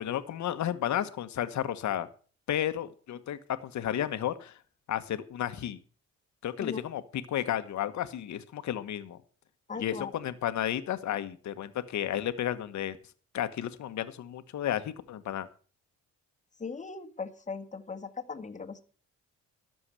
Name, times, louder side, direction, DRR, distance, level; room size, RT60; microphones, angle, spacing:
voice 1, 0.0-2.1 2.5-4.5 4.9-5.8 6.4-9.2 9.8-13.0 13.3-15.5, left 11 dB, 70° left, 11 dB, 1.3 m, -32 dB
voice 2, 9.7-10.1 16.6-18.8, left 5 dB, 25° left, 6 dB, 1.7 m, -38 dB
13.0 x 7.1 x 7.6 m, 0.41 s
cardioid pair, 90°, 30 cm